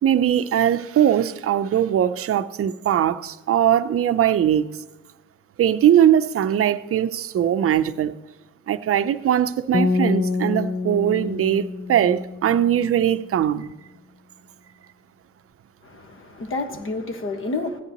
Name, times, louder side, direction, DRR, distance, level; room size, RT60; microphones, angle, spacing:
voice 1, 0.0-4.7 5.6-8.1 8.7-13.7, right 10 dB, 50° right, 0.6 m, -20 dB
sound 1, 9.7-12.9, left 3 dB, 25° left, 0.5 m, -26 dB
voice 2, 15.8-17.8, left 3 dB, 45° left, 1.5 m, -29 dB
16.0 x 9.7 x 3.0 m
cardioid pair, 90°, 30 cm